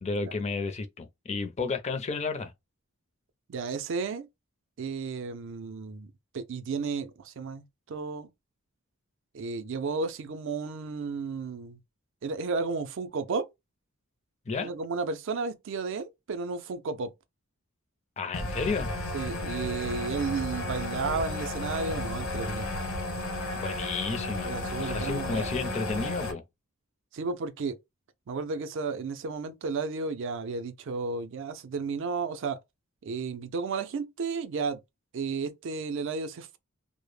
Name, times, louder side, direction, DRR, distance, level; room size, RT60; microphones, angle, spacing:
voice 1, 0.0-2.5 14.5-14.7 18.2-18.9 23.6-26.4, left 4 dB, 30° left, 0.4 m, -32 dB
voice 2, 3.5-4.3 4.8-8.3 9.3-11.8 12.2-13.5 14.6-17.1 19.1-22.7 24.4-25.5 25.9-26.1 27.1-27.8 28.3-32.6 33.0-34.8 35.1-36.6, right 4 dB, 60° right, 0.4 m, -33 dB
sound 1, 18.3-26.3, left 2 dB, 75° left, 0.9 m, -33 dB
2.0 x 2.0 x 3.1 m
head